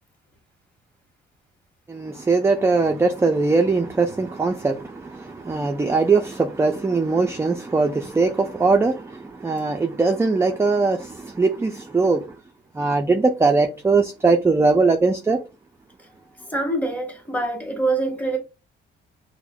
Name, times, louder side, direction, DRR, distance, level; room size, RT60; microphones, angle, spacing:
voice 1, 1.9-12.3 12.7-15.4, right 3 dB, 15° right, 0.4 m, -21 dB
voice 2, 16.5-18.4, right 2 dB, 10° left, 1.2 m, -25 dB
5.9 x 2.1 x 2.2 m
cardioid pair, 90°, 20 cm